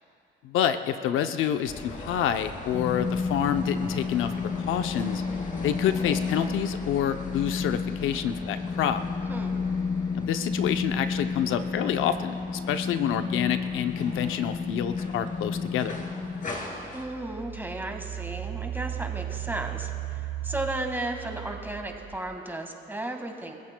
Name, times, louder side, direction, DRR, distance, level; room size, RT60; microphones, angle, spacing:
voice 1, 0.4-5.2 5.6-9.0 10.1-16.0, left 9 dB, 85° left, 8 dB, 0.6 m, -28 dB
sound 1, 1.7-17.0, left 2 dB, 40° left, 2.6 m, -41 dB
sound 2, 2.7-16.5, left 4 dB, 20° left, 0.7 m, -31 dB
voice 2, 9.3-9.6 16.9-23.5, right 1 dB, 10° right, 3 dB, 1.7 m, -34 dB
Engine, 16.4-22.3, right 12 dB, 50° right, 1.1 m, -36 dB
29.5 x 14.5 x 2.2 m, 2.5 s
cardioid pair, 90°, 20 cm